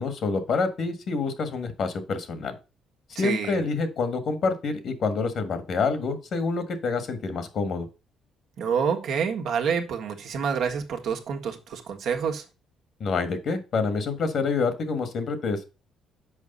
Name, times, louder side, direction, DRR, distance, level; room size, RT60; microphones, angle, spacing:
voice 1, 0.0-2.5 3.2-7.9 13.0-15.7, left 4 dB, 60° left, 1.6 m, -27 dB
voice 2, 3.1-3.6 8.6-12.4, right 6 dB, 70° right, 1.4 m, -28 dB
6.5 x 5.0 x 5.4 m
cardioid pair, 80°, 0 cm